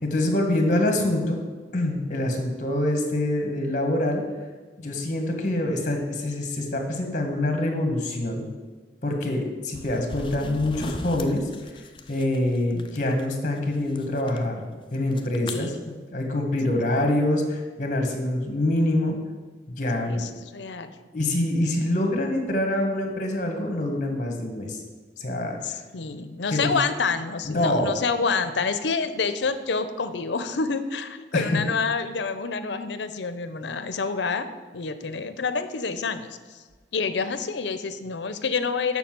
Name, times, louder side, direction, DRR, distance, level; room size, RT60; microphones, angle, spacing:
voice 1, 0.0-1.4 1.7-4.2 4.8-8.5 9.0-11.8 12.1-14.6 14.9-19.2 19.7-20.3 21.1-24.8 25.2-25.8 26.5-26.7 27.4-27.9 31.3-31.5, left 1 dB, 45° left, 3 dB, 1.5 m, -25 dB
sound 1, 9.7-13.3 13.6-14.4 14.9-15.5, left 2 dB, 30° left, 0.5 m, -38 dB
voice 2, 20.1-21.0 25.6-34.5 34.7-36.6 36.9-39.0, left 4 dB, 85° left, 11 dB, 0.6 m, -28 dB
7.0 x 6.0 x 7.5 m, 1.4 s
head